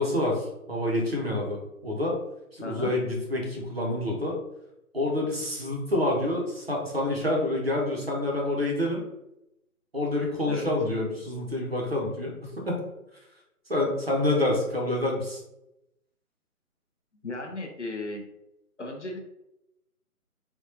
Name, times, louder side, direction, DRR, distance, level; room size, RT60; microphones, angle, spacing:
voice 1, 0.0-2.2 2.5-4.4 4.9-9.0 9.9-12.8 13.7-15.4, left 1 dB, 40° right, -2 dB, 0.7 m, -27 dB
voice 2, 2.6-2.9 10.5-10.7 17.2-18.2 18.8-19.2, left 2 dB, 50° left, 2 dB, 0.5 m, -35 dB
3.4 x 2.2 x 2.7 m, 0.87 s
hypercardioid pair, 180°, 45 cm